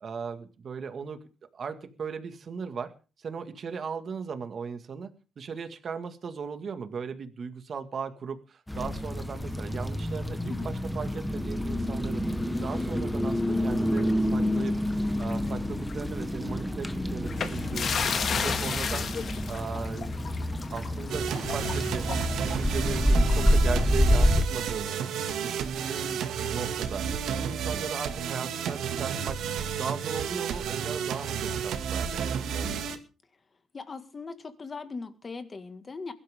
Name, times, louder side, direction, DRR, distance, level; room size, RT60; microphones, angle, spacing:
voice 1, 0.0-2.9 3.2-12.3 12.6-14.8 15.2-17.9 18.3-19.1 19.5-20.2 20.6-22.1 22.4-25.0 25.4-27.1 27.4-29.4 29.8-32.9, right 6 dB, 40° right, 8 dB, 2.0 m, -37 dB
sound 1, 8.7-24.4, equal, 5° left, 1.3 m, -28 dB
sound 2, 13.9-15.5 15.8-16.0 17.3-23.8, left 6 dB, 45° left, 1.9 m, -34 dB
sound 3, 21.1-33.0, right 7 dB, 70° right, 2.2 m, -32 dB
voice 2, 33.7-36.1, left 4 dB, 25° left, 9 dB, 1.9 m, -39 dB
22.0 x 12.0 x 3.7 m, 0.35 s
cardioid pair, 145°, 0 cm